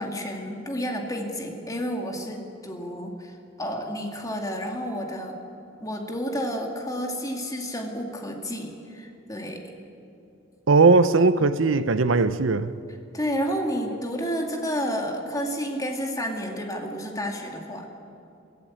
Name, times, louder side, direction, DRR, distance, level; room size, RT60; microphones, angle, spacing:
voice 1, 0.0-5.4 5.8-9.6 13.1-17.9, equal, 20° left, 2.4 m, -30 dB
voice 2, 10.7-12.7, right 4 dB, 90° right, 0.7 m, -19 dB
23.0 x 15.0 x 8.7 m
head